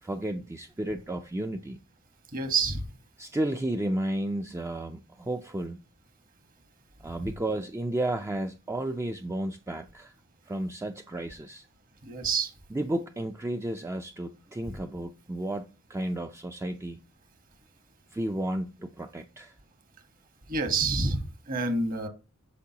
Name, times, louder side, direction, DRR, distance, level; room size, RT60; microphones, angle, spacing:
voice 1, 0.0-1.8 3.2-5.8 7.0-10.1 10.5-11.7 12.7-17.0 18.1-19.5, right 1 dB, 15° right, 0.4 m, -32 dB
voice 2, 2.3-2.8 12.0-12.5 14.7-14.8 20.5-22.1, right 4 dB, 40° right, 1.2 m, -28 dB
8.3 x 6.2 x 2.8 m
head